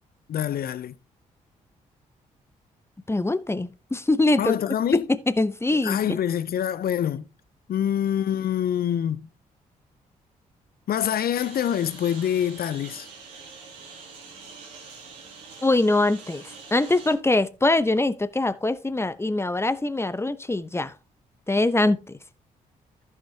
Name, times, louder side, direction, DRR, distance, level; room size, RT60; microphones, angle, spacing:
voice 1, 0.3-0.9 4.4-5.0 5.8-7.3 7.7-9.3 10.9-13.1, left 10 dB, 55° left, 0.7 m, -25 dB
voice 2, 3.1-4.5 4.9-6.2 15.6-16.4 16.7-20.9 21.5-22.2, left 2 dB, 15° left, 0.9 m, -23 dB
Engine, 11.3-17.1, right 5 dB, 80° right, 2.6 m, -45 dB
14.0 x 5.9 x 2.8 m
hypercardioid pair, 40°, 18 cm